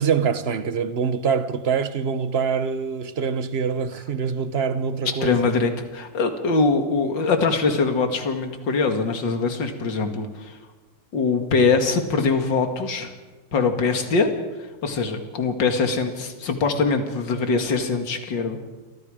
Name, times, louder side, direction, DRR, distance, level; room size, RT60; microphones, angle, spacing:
voice 1, 0.0-5.5, right 6 dB, 40° right, 1.1 m, -24 dB
voice 2, 5.2-10.6 11.1-13.1 13.5-14.3 14.6-18.6, left 4 dB, 70° left, 2.8 m, -23 dB
28.5 x 24.5 x 5.1 m
omnidirectional pair, 2.1 m